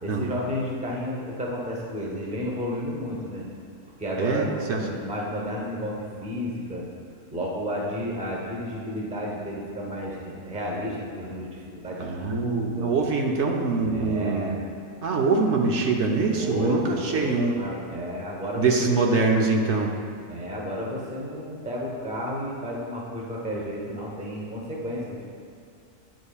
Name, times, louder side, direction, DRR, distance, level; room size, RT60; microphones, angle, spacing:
voice 1, 0.0-3.5 4.0-6.9 7.3-12.9 13.8-14.6 16.3-19.2 20.3-25.3, equal, 5° right, -3 dB, 0.8 m, -32 dB
voice 2, 4.2-4.8 12.0-14.6 15.0-17.6 18.5-19.9, right 4 dB, 60° right, 1 dB, 0.9 m, -24 dB
9.9 x 7.5 x 2.4 m, 2.4 s
omnidirectional pair, 1.5 m